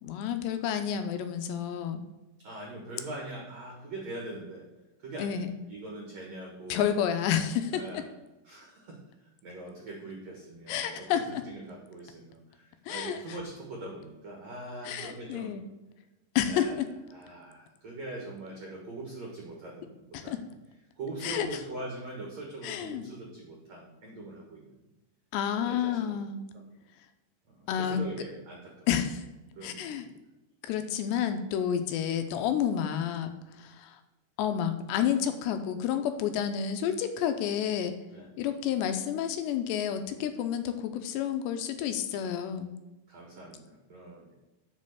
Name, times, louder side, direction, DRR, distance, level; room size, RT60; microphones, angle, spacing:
voice 1, 0.0-2.0 5.2-5.5 6.7-7.8 10.7-11.4 12.9-13.4 14.8-15.6 16.4-16.9 20.1-20.4 21.2-21.5 22.6-23.1 25.3-26.4 27.7-28.0 28.9-29.3 29.6-30.1 30.6-34.0 34.4-37.9 38.4-42.7, left 9 dB, 80° left, 7 dB, 2.7 m, -30 dB
voice 2, 2.4-4.6 5.0-7.1 7.7-8.1 8.4-15.6 16.5-16.8 17.1-20.4 21.0-24.8 25.7-26.2 27.5-28.9 29.6-30.1 38.1-38.3 43.1-44.3, right 2 dB, 55° right, -2 dB, 2.0 m, -42 dB
7.3 x 5.4 x 6.8 m, 1.0 s
omnidirectional pair, 5.2 m